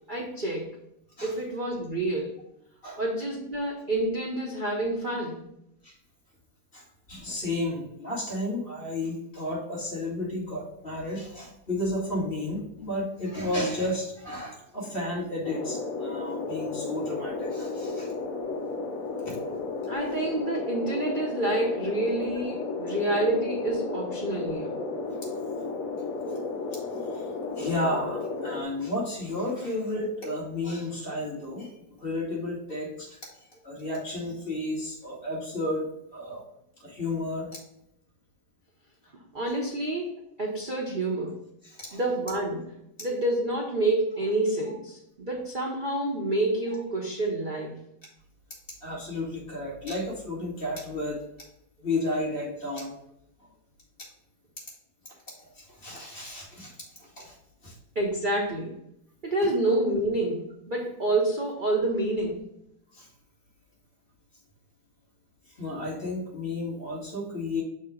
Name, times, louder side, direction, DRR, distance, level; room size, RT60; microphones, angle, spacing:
voice 1, 0.1-0.7 1.2-2.3 3.0-5.4 19.9-24.7 39.3-41.4 41.9-42.7 43.0-47.8 57.9-58.8 59.2-62.4, right 1 dB, 80° right, -2 dB, 0.4 m, -28 dB
voice 2, 6.7-18.1 19.2-19.4 22.9-23.0 25.1-25.4 27.1-27.2 27.5-33.2 33.6-35.9 36.1-36.4 36.8-37.5 41.6-42.0 48.8-51.2 51.8-53.0 55.5-57.3 57.6-57.7 62.9-63.1 65.6-67.6, left 1 dB, 30° left, -5 dB, 2.1 m, -32 dB
sound 1, 15.4-28.6, left 3 dB, 60° left, 0.9 m, -33 dB
6.4 x 2.9 x 5.0 m, 0.78 s
omnidirectional pair, 2.2 m